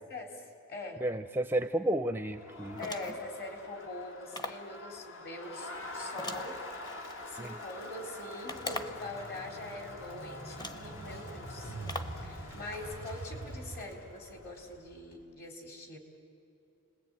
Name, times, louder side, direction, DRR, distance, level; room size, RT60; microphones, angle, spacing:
voice 1, 0.1-0.4 0.7-1.0 2.8-6.6 7.3-11.7 12.1-16.0, left 2 dB, 45° left, 3 dB, 4.1 m, -43 dB
voice 2, 1.0-2.8 7.4-7.6, right 1 dB, 10° right, 9 dB, 0.5 m, -32 dB
Crowd, 2.2-14.8, left 2 dB, 60° left, 2.0 m, -46 dB
sound 1, 2.8-3.3 4.3-4.7 6.2-7.2 8.5-9.1 10.0-10.1 10.6-10.9 11.9-12.2, left 2 dB, 20° left, 0.9 m, -41 dB
Motorcycle, 8.4-15.2, right 2 dB, 75° left, 5.5 m, -45 dB
29.5 x 20.5 x 9.0 m, 2.7 s
head